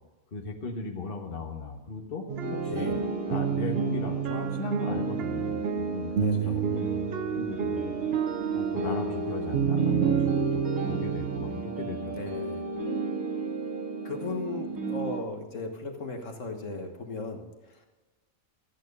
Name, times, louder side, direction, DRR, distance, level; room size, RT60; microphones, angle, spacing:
voice 1, 0.3-2.9 3.3-7.1 7.3-7.9 8.5-10.6 10.9-12.2, left 4 dB, 45° left, 2 dB, 1.5 m, -37 dB
sound 1, 2.3-11.6, right 6 dB, 55° right, 0.8 m, -30 dB
sound 2, 2.4-15.2, right 4 dB, 85° right, 2.2 m, -33 dB
voice 2, 2.7-3.1 6.1-6.7 11.3-11.4 12.1-12.7 14.0-17.9, left 3 dB, 65° left, 3 dB, 1.8 m, -37 dB
14.0 x 9.2 x 5.4 m, 1.2 s
omnidirectional pair, 1.4 m